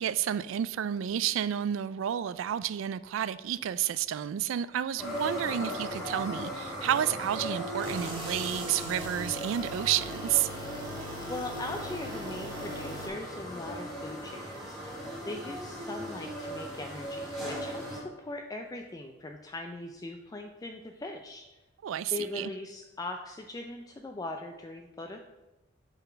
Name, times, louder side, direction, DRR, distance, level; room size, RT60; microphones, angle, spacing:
voice 1, 0.0-10.5 21.8-22.5, right 10 dB, 70° right, 0.3 m, -30 dB
sound 1, 5.0-18.0, equal, ahead, 2.1 m, -38 dB
sound 2, 7.8-13.1, equal, 25° right, 1.7 m, -41 dB
voice 2, 11.3-15.0 15.3-21.6 22.1-25.2, left 2 dB, 20° left, 0.4 m, -40 dB
7.1 x 4.0 x 5.5 m
head